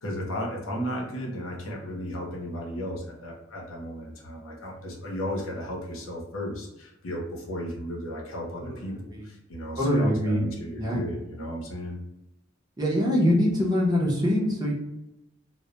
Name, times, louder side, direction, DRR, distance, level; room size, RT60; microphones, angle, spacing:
voice 1, 0.0-12.0, equal, 90° left, -1 dB, 0.7 m, -34 dB
voice 2, 8.6-9.2 9.8-10.4 10.8-11.0 12.8-14.7, equal, 20° right, -3 dB, 0.6 m, -24 dB
2.1 x 2.0 x 2.8 m, 0.94 s
head